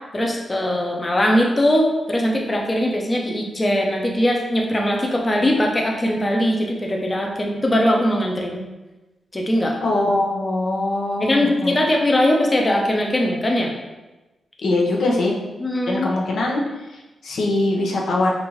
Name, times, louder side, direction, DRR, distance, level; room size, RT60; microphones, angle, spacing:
voice 1, 0.1-8.6 9.3-9.8 11.2-13.7 15.6-16.1, left 1 dB, 20° left, 0 dB, 0.6 m, -20 dB
voice 2, 9.8-11.8 14.6-15.4 15.9-16.6 16.9-18.3, left 2 dB, 75° left, -2 dB, 0.8 m, -22 dB
5.2 x 2.6 x 3.1 m, 1.1 s
cardioid pair, 100°, 0 cm